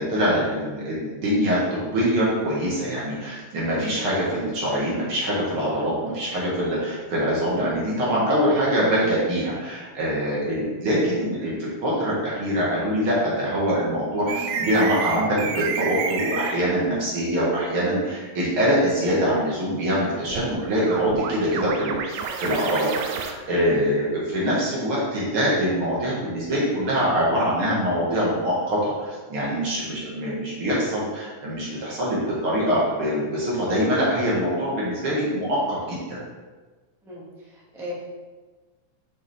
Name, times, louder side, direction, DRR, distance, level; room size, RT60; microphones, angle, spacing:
voice 1, 0.0-36.2, equal, 45° right, -6 dB, 2.2 m, -24 dB
sound 1, 14.3-16.6 20.3-23.3, right 6 dB, 80° right, 2.0 m, -29 dB
voice 2, 37.0-37.9, left 1 dB, ahead, -8 dB, 0.6 m, -38 dB
6.6 x 6.2 x 3.4 m, 1.3 s
omnidirectional pair, 3.7 m